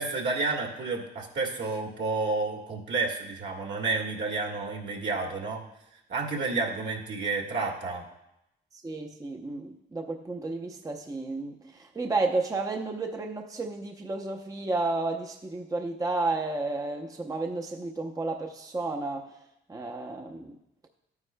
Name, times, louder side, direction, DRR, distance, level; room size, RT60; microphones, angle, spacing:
voice 1, 0.0-5.6 6.1-8.0, right 3 dB, 65° right, -1 dB, 1.8 m, -30 dB
voice 2, 8.7-19.3 19.7-20.6, right 3 dB, 15° right, 2 dB, 0.7 m, -32 dB
12.5 x 9.5 x 2.2 m, 0.84 s
cardioid pair, 90°, 20 cm